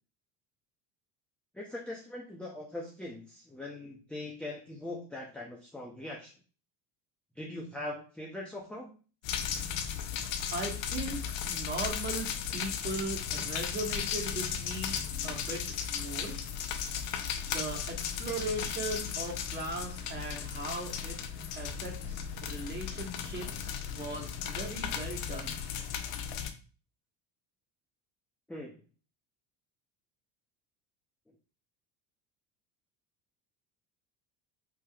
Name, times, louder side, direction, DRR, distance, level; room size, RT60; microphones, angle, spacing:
voice 1, 1.5-6.3 7.4-9.0 28.5-28.7, left 1 dB, ahead, -3 dB, 0.6 m, -41 dB
sound 1, 9.2-26.5, left 8 dB, 80° left, 0.7 m, -36 dB
voice 2, 10.5-11.2 11.5-16.4 17.4-21.2 21.6-25.6, right 2 dB, 25° right, -1 dB, 1.5 m, -38 dB
4.8 x 2.8 x 2.3 m, 0.38 s
supercardioid pair, 95°, 45 cm